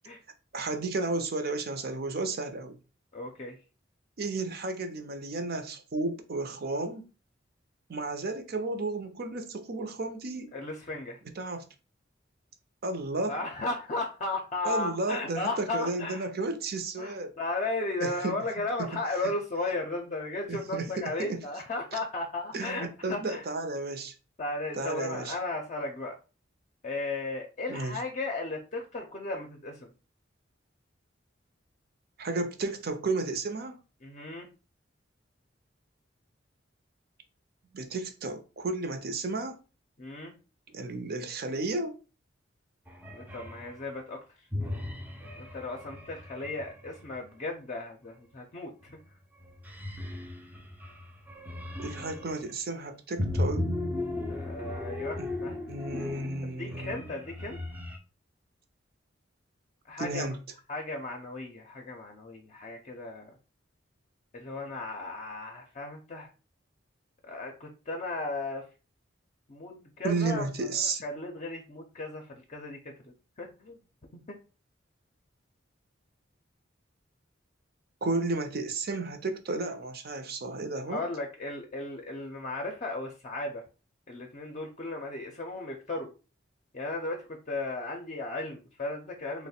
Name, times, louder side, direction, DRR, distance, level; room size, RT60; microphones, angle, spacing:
voice 1, 0.5-2.8 4.2-7.1 7.9-10.5 11.4-11.7 12.8-13.4 14.6-17.3 18.0-18.4 18.8-19.3 20.5-21.4 21.9-22.0 22.5-24.1 24.7-25.4 27.7-28.0 32.2-33.8 37.7-39.6 40.7-42.0 51.8-53.7 55.2-55.3 55.7-57.0 60.0-60.4 70.0-71.0 78.0-81.0, right 3 dB, 55° right, 0.6 m, -33 dB
voice 2, 3.1-3.6 10.5-11.2 13.3-16.3 17.0-23.4 24.4-26.2 26.8-29.9 34.0-34.5 40.0-40.3 43.1-44.2 45.4-49.0 54.3-55.6 56.4-57.6 59.9-60.3 60.7-63.3 64.3-66.3 67.2-68.6 69.5-70.7 71.0-72.9 73.4-73.8 74.1-74.4 80.9-83.6 84.1-86.1 86.7-89.5, left 2 dB, 40° left, 0.5 m, -35 dB
sound 1, 42.9-43.7 44.5-47.2 48.8-49.1 49.4-52.4 53.2-58.0, left 1 dB, 10° right, 0.5 m, -36 dB
3.1 x 2.1 x 4.2 m
head